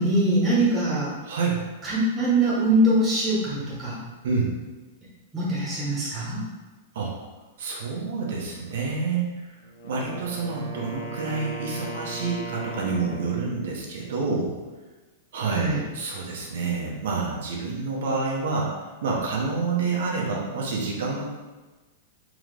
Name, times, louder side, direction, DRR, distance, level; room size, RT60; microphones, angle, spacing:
voice 1, 0.0-1.1 1.8-4.0 5.3-6.4 15.5-15.8, right 1 dB, 10° right, -9 dB, 1.1 m, -23 dB
voice 2, 1.3-1.6 4.2-4.5 6.9-7.1 7.6-9.2 9.8-14.5 15.3-18.7 19.0-21.2, right 4 dB, 65° right, -3 dB, 0.8 m, -28 dB
Wind instrument woodwind instrument, 9.6-13.5, right 2 dB, 65° left, 0.7 m, -38 dB
3.7 x 3.1 x 3.3 m, 1.2 s
supercardioid pair, 175°, 0 cm